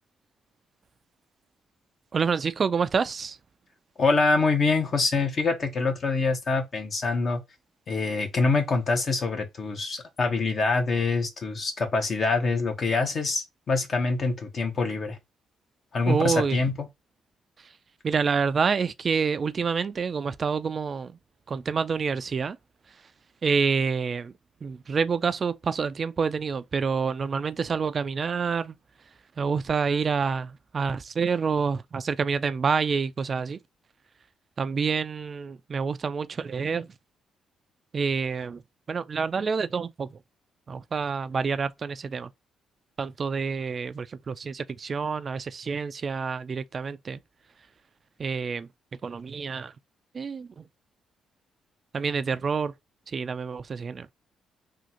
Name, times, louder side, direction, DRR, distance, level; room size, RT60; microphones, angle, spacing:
voice 1, 2.1-3.4 16.1-16.6 18.0-21.1 21.5-22.6 23.4-24.3 24.6-28.7 29.4-33.6 34.6-36.9 37.9-38.6 38.9-40.2 40.7-42.3 43.0-47.2 48.2-48.7 49.0-49.7 50.1-50.6 51.9-52.7 53.1-54.1, right 5 dB, 40° right, 0.3 m, -27 dB
voice 2, 4.0-7.4 7.9-15.2 15.9-16.9, left 3 dB, 50° left, 1.1 m, -25 dB
3.7 x 2.5 x 2.8 m
cardioid pair, 90°, 0 cm